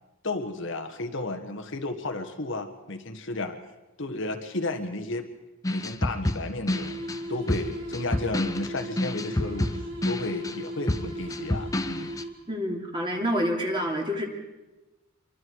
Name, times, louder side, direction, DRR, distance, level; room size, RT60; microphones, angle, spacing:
voice 1, 0.2-3.6 4.0-5.3 5.7-7.0 7.3-9.7 10.0-12.1, left 2 dB, 55° left, 6 dB, 1.5 m, -33 dB
sound 1, 5.6-12.2, left 1 dB, 15° left, 0.8 m, -29 dB
sound 2, 6.7-12.6, equal, 55° right, 4.0 m, -38 dB
voice 2, 12.5-14.2, equal, 20° right, 1 dB, 3.0 m, -27 dB
27.5 x 23.5 x 4.7 m, 1.1 s
head